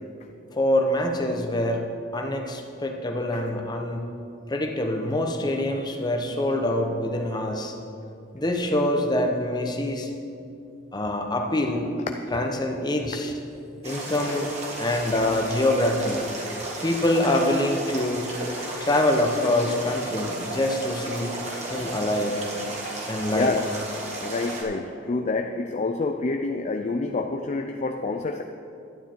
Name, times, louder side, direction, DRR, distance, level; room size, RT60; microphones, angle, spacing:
voice 1, 0.5-1.9 2.1-4.0 4.5-7.7 8.3-10.1 10.9-11.9 12.3-13.3 13.8-14.5 14.8-16.2 16.8-18.3 18.8-21.3 21.7-22.3 23.1-23.5, left 1 dB, 20° left, 3 dB, 1.0 m, -25 dB
sound 1, 13.8-24.6, right 2 dB, 35° right, 1.8 m, -34 dB
voice 2, 23.0-23.8 24.2-28.4, left 3 dB, 35° left, 5 dB, 0.4 m, -28 dB
11.5 x 9.4 x 4.6 m, 2.6 s
head